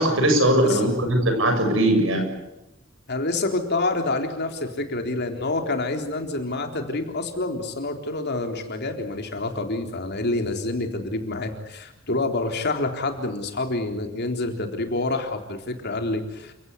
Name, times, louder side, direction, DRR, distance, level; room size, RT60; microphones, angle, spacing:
voice 1, 0.0-2.3, right 1 dB, 65° right, 5 dB, 7.4 m, -20 dB
voice 2, 3.1-16.5, left 2 dB, 55° left, 5 dB, 3.8 m, -27 dB
30.0 x 17.5 x 8.4 m, 0.95 s
head